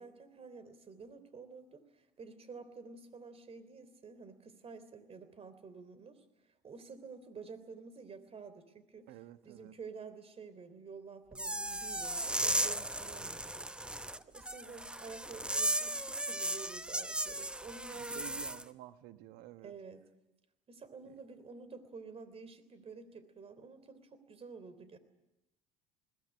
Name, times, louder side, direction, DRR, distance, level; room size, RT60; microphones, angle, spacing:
voice 1, 0.0-6.2 6.6-9.1 9.4-18.5 19.6-20.0 20.7-25.0, right 5 dB, 35° right, 13 dB, 3.4 m, -50 dB
voice 2, 9.1-9.7 17.9-19.7 21.0-21.1, right 14 dB, 70° right, 11 dB, 1.4 m, -51 dB
sound 1, 11.3-18.6, right 1 dB, 5° right, 0.9 m, -36 dB
21.0 x 18.0 x 9.9 m, 0.97 s
hypercardioid pair, 70°, 17 cm